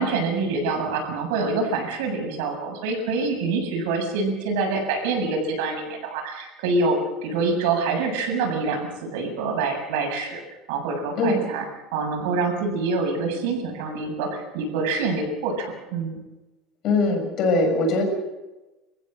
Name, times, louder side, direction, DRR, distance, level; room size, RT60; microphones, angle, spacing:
voice 1, 0.0-10.4 10.7-11.6 11.9-16.2, right 3 dB, 80° right, 3 dB, 7.5 m, -26 dB
voice 2, 16.8-18.0, left 2 dB, 40° left, 3 dB, 6.8 m, -21 dB
29.5 x 15.5 x 6.6 m, 1.1 s
cardioid pair, 160°, 0 cm